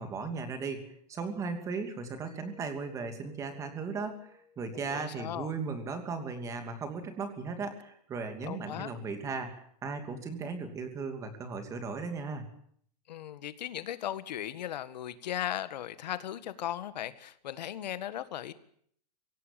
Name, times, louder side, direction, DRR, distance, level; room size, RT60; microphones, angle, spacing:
voice 1, 0.0-12.4, right 4 dB, 15° right, 7 dB, 2.7 m, -37 dB
Mallet percussion, 2.3-6.9, left 5 dB, 65° right, 7.6 m, -60 dB
voice 2, 4.7-5.5 8.4-8.9 13.1-18.5, left 11 dB, 80° left, 12 dB, 1.8 m, -37 dB
24.0 x 17.0 x 9.0 m, 0.64 s
supercardioid pair, 175°, 21 cm